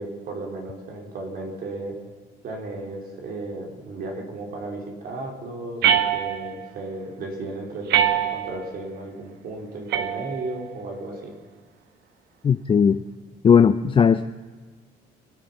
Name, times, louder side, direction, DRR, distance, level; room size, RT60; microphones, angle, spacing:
voice 1, 0.0-2.0 2.4-11.3, right 2 dB, 60° right, 1 dB, 4.1 m, -34 dB
sound 1, 5.8-6.7 7.9-8.7 9.9-10.7, right 9 dB, 75° right, 1.1 m, -23 dB
voice 2, 12.4-13.0 13.4-14.3, left 7 dB, 30° left, 9 dB, 0.5 m, -17 dB
24.5 x 9.1 x 5.8 m, 1.4 s
cardioid pair, 110°, 17 cm